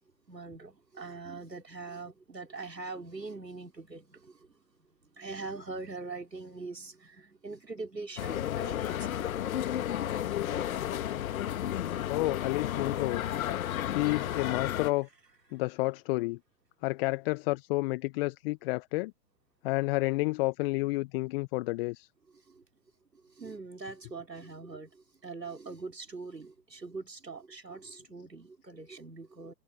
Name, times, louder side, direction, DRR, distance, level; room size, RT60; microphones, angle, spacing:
voice 1, 0.3-4.5 5.2-9.5 12.2-12.3 22.5-22.6 23.4-29.5, right 3 dB, 90° right, 3.5 m, -43 dB
sound 1, 8.2-14.9, left 11 dB, 55° left, 2.4 m, -32 dB
voice 2, 12.1-13.2 13.9-15.1 15.5-16.4 16.8-19.1 19.6-22.1, left 22 dB, 35° left, 1.4 m, -30 dB
figure-of-eight pair, 115°, 48 cm